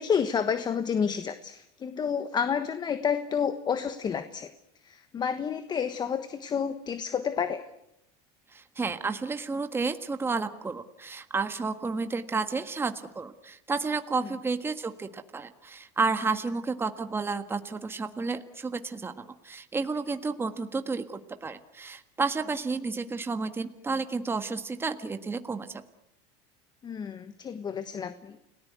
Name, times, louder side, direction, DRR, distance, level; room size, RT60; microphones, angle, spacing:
voice 1, 0.0-4.5 4.8-7.6 14.2-14.3 26.8-28.4, left 7 dB, 30° left, 11 dB, 1.3 m, -30 dB
voice 2, 8.5-25.7, right 4 dB, 15° right, 8 dB, 1.6 m, -31 dB
29.5 x 18.0 x 8.2 m, 0.83 s
supercardioid pair, 115°, 14 cm